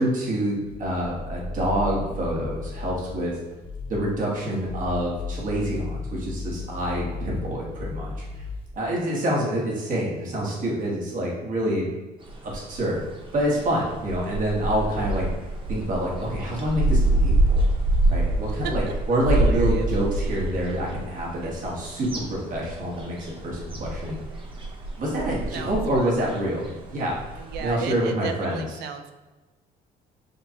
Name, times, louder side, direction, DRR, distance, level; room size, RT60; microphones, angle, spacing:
voice 1, 0.0-3.3 3.9-8.1 8.8-11.9 12.4-13.0 13.3-15.3 15.7-17.6 18.1-24.2 25.0-28.6, right 1 dB, 50° right, -4 dB, 1.3 m, -27 dB
sound 1, 0.7-3.3 3.6-4.1 4.5-8.8, left 3 dB, 30° left, 0.5 m, -35 dB
sound 2, 12.2-27.7, right 1 dB, 30° right, 0.8 m, -26 dB
voice 2, 19.1-19.9 21.4-21.5 25.3-26.1 27.4-29.1, right 6 dB, 75° right, 7 dB, 0.5 m, -35 dB
6.6 x 2.3 x 2.9 m, 1.1 s
cardioid pair, 110°, 17 cm